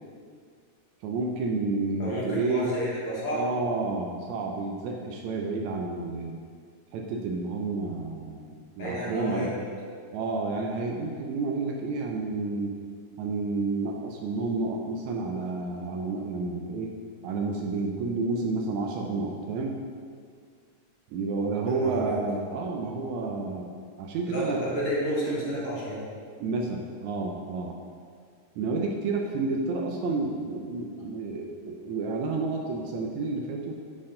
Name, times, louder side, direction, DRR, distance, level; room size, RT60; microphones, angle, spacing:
voice 1, 1.0-2.7 3.3-6.4 6.9-9.5 10.1-12.8 13.2-16.9 17.2-19.8 21.1-24.6 26.4-27.8 28.6-33.8, right 3 dB, 80° right, 1 dB, 1.8 m, -30 dB
voice 2, 2.0-3.4 8.8-9.6 21.7-22.2 24.3-26.0, equal, 50° left, -7 dB, 2.3 m, -31 dB
9.5 x 4.3 x 3.8 m, 2.1 s
omnidirectional pair, 3.6 m